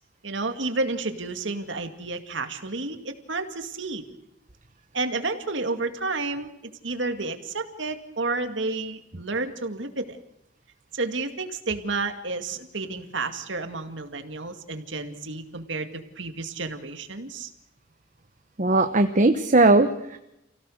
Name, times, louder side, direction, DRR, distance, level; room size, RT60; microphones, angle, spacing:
voice 1, 0.2-4.0 4.9-6.5 6.8-10.2 10.9-15.9 16.2-17.5, right 3 dB, 70° right, 7 dB, 2.2 m, -31 dB
voice 2, 18.6-20.2, right 2 dB, 40° right, 7 dB, 1.1 m, -19 dB
29.0 x 17.0 x 6.5 m, 0.86 s
head